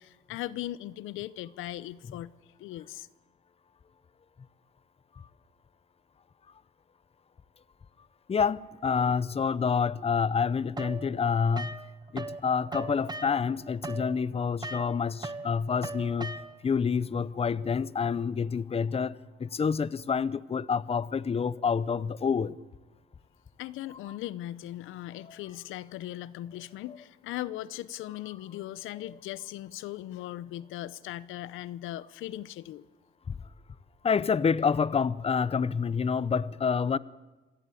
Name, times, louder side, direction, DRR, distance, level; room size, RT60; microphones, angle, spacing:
voice 1, 0.0-2.3 2.6-3.1 23.6-32.8, left 14 dB, 90° left, 0.7 m, -39 dB
voice 2, 8.3-11.8 12.1-22.5 33.3-33.4 34.0-37.0, left 6 dB, 30° left, 0.7 m, -28 dB
sound 1, 10.8-12.4 12.7-16.8, right 2 dB, 20° right, 1.7 m, -39 dB
26.0 x 17.0 x 8.5 m
cardioid pair, 90°, 20 cm